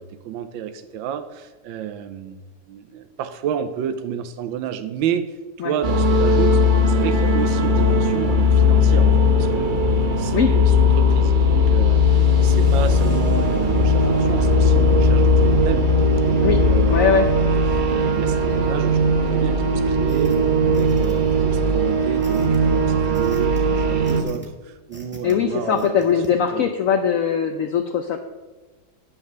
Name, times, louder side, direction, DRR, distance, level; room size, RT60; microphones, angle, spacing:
voice 1, 0.0-2.4 2.7-6.6 6.9-9.8 10.2-15.9 16.2-19.0 19.3-26.1 26.5-26.7, right 8 dB, 80° right, 9 dB, 1.4 m, -30 dB
sound 1, 5.8-24.2, left 2 dB, 40° right, 0.7 m, -18 dB
voice 2, 16.9-17.3 25.2-28.2, left 7 dB, 75° left, 6 dB, 0.7 m, -20 dB
sound 2, 20.1-20.4 20.7-21.4 22.2-22.6 23.1-23.6 24.0-24.5 24.9-25.3 25.8-26.3, equal, 5° right, 1.2 m, -41 dB
10.0 x 5.9 x 6.7 m, 1.2 s
omnidirectional pair, 2.2 m